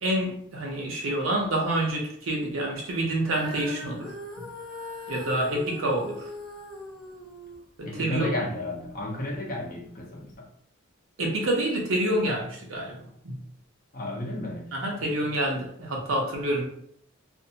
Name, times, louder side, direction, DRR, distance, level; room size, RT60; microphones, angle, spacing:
voice 1, 0.0-4.1 4.4-4.5 5.1-6.3 7.8-8.3 11.2-13.4 14.7-16.7, right 1 dB, 85° right, -1 dB, 0.7 m, -28 dB
Female singing, 3.2-9.5 10.2-10.3, equal, ahead, 0.5 m, -41 dB
voice 2, 7.9-10.5 13.9-14.8, left 1 dB, 45° left, -1 dB, 0.6 m, -33 dB
2.6 x 2.1 x 2.7 m, 0.66 s
head